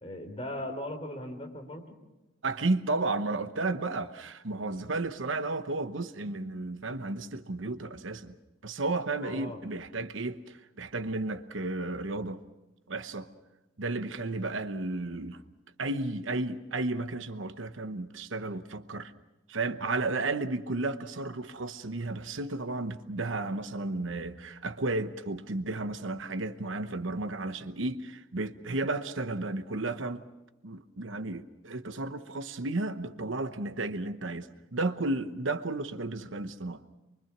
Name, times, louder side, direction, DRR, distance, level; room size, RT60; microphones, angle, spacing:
voice 1, 0.0-1.8 9.2-9.6 19.8-19.9, left 1 dB, 30° left, 3.2 m, -38 dB
voice 2, 2.4-8.4 8.6-12.4 12.9-13.3 13.8-15.4 15.8-19.1 19.5-30.2 30.6-36.8, right 2 dB, 75° right, 1.0 m, -33 dB
24.0 x 24.0 x 6.0 m
head